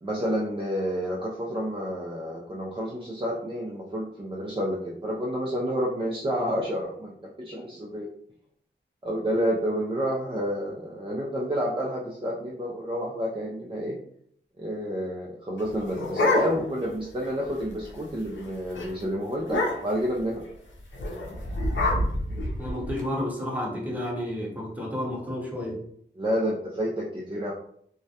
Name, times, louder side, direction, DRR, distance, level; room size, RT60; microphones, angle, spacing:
voice 1, 0.0-8.1 9.0-14.0 14.6-20.4 26.2-27.5, equal, 25° right, -3 dB, 0.5 m, -29 dB
sound 1, 15.6-16.9 17.2-17.3 17.6-17.9 18.2-18.4 18.8-18.9 19.4-20.1 20.9-23.0, left 1 dB, 75° left, 0.6 m, -27 dB
voice 2, 22.6-25.8, left 1 dB, 10° right, -3 dB, 0.9 m, -31 dB
2.3 x 2.0 x 2.7 m, 0.65 s
cardioid pair, 50°, 20 cm